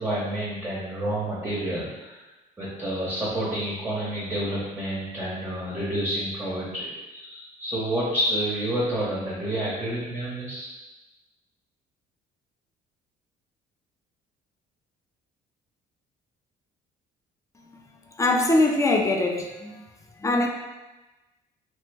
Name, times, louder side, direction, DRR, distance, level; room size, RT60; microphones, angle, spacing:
voice 1, 0.0-2.3 2.6-10.7, right 1 dB, 10° right, -7 dB, 0.7 m, -29 dB
voice 2, 18.1-19.8 20.2-20.5, left 2 dB, 20° left, 3 dB, 0.4 m, -22 dB
3.1 x 2.0 x 3.3 m, 1.1 s
cardioid pair, 110°, 17 cm